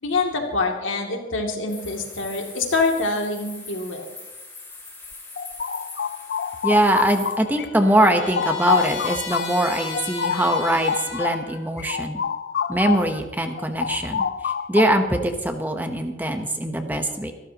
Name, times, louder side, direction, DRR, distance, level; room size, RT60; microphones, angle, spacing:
voice 1, 0.0-4.1, left 3 dB, 90° left, 1 dB, 2.6 m, -25 dB
sound 1, 1.7-7.4, left 3 dB, 10° left, 5.4 m, -41 dB
sound 2, 5.1-7.7 8.0-13.2 13.5-15.2, left 7 dB, 55° left, 0.4 m, -27 dB
voice 2, 6.6-12.2 12.7-17.3, right 1 dB, 10° right, 5 dB, 1.0 m, -22 dB
Trumpet, 6.9-11.6, left 3 dB, 35° left, 3.4 m, -35 dB
25.5 x 12.5 x 3.0 m, 1.1 s
head